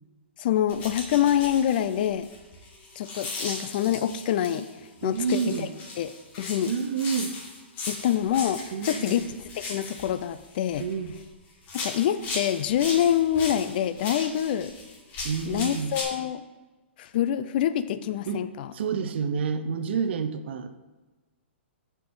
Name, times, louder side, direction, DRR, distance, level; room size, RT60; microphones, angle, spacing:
voice 1, 0.4-2.3 3.0-4.7 5.0-5.7 6.0-6.7 7.9-10.9 11.7-14.7 15.5-16.4 17.0-18.7, left 10 dB, 50° left, 13 dB, 0.4 m, -26 dB
sound 1, 0.7-4.7 5.1-11.3 11.6-16.0, left 3 dB, 25° left, 1.6 m, -38 dB
voice 2, 5.0-5.7 6.7-7.4 8.7-9.2 10.8-11.2 15.2-16.0 18.3-18.5 18.7-20.8, right 6 dB, 60° right, 9 dB, 0.6 m, -29 dB
6.0 x 4.6 x 6.1 m, 1.2 s
hypercardioid pair, 145°, 7 cm